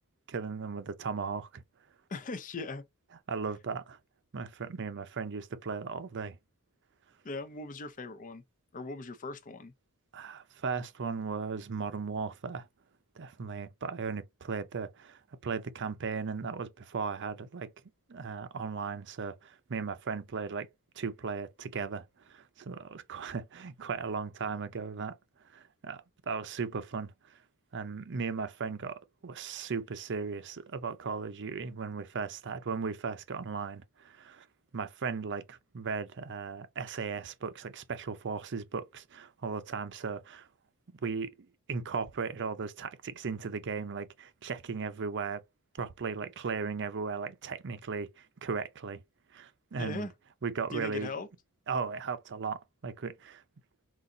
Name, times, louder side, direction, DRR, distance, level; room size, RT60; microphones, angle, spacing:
voice 1, 0.3-1.6 3.3-4.0 4.3-6.4 10.1-12.7 13.2-17.7 18.1-20.7 21.0-25.2 25.5-27.4 27.7-34.5 34.7-40.5 41.0-45.4 45.7-49.0 49.3-50.1 50.4-51.1 51.7-53.4, right 5 dB, 55° right, 0.6 m, -37 dB
voice 2, 2.1-2.8 7.2-8.4 8.7-9.7 49.8-50.1 50.7-51.3, left 3 dB, 35° left, 0.5 m, -39 dB
4.0 x 2.5 x 3.8 m
head